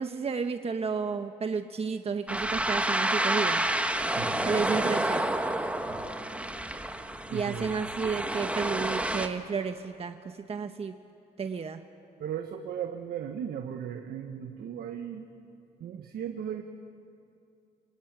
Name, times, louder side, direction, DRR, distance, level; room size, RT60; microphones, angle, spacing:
voice 1, 0.0-3.6 4.4-5.2 7.3-10.9 11.4-11.8, right 5 dB, 40° right, 7 dB, 1.2 m, -32 dB
sound 1, 2.3-9.3, right 1 dB, 10° right, 1.7 m, -29 dB
voice 2, 4.2-4.5 5.9-6.0 7.3-7.7 12.2-15.3 15.8-16.6, right 8 dB, 75° right, 5 dB, 1.6 m, -36 dB
27.0 x 21.0 x 9.2 m, 2.5 s
cardioid pair, 90°, 16 cm